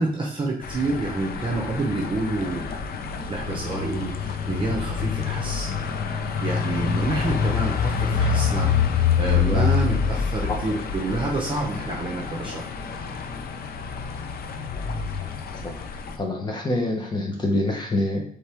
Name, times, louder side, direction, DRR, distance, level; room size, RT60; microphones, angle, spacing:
voice 1, 0.0-2.7 3.3-5.7 6.4-12.6, right 2 dB, 30° right, -1 dB, 0.8 m, -28 dB
sound 1, 0.6-16.2, left 6 dB, 80° left, 0.5 m, -26 dB
voice 2, 15.5-15.9 16.2-18.2, left 1 dB, 30° left, 1 dB, 1.0 m, -26 dB
4.3 x 3.3 x 3.5 m, 0.66 s
wide cardioid pair, 140°, 16 cm